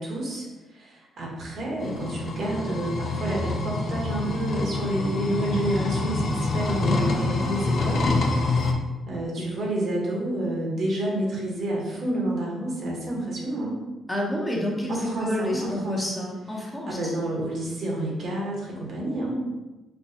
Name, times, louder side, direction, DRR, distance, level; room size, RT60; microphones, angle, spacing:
voice 1, 0.0-8.2 9.1-13.8 14.9-16.1 16.6-19.4, right 1 dB, 60° right, -3 dB, 1.2 m, -29 dB
sound 1, 1.8-8.7, left 3 dB, 55° left, 0.5 m, -26 dB
voice 2, 14.1-17.1, left 1 dB, 15° left, -3 dB, 0.8 m, -29 dB
4.5 x 2.3 x 2.7 m, 1.1 s
cardioid pair, 90°, 0 cm